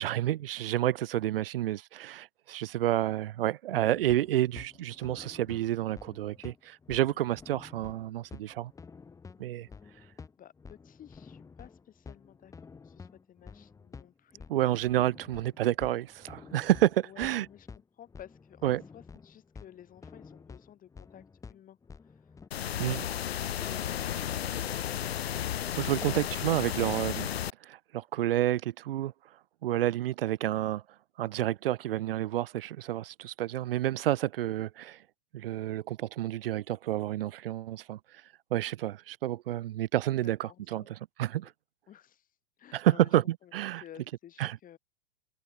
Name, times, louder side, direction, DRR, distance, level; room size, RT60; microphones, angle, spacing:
voice 1, 0.0-8.7 9.4-9.7 14.5-17.5 18.6-18.8 22.8-23.0 25.8-27.3 27.6-29.1 29.6-30.8 31.2-35.0 35.3-38.0 38.5-40.8 41.2-41.5 42.7-43.8 44.4-44.6, right 13 dB, 65° right, 0.8 m, -29 dB
sound 1, 3.7-22.5, left 5 dB, 10° left, 0.9 m, -50 dB
voice 2, 10.4-14.5 17.0-17.7 17.9-21.8 22.0-22.3 23.6-24.7 40.2-40.9 41.9-43.5 43.8-44.8, left 11 dB, 25° left, 2.8 m, -53 dB
sound 2, 22.5-27.5, left 10 dB, 75° left, 0.7 m, -33 dB
figure-of-eight pair, 100°, 31 cm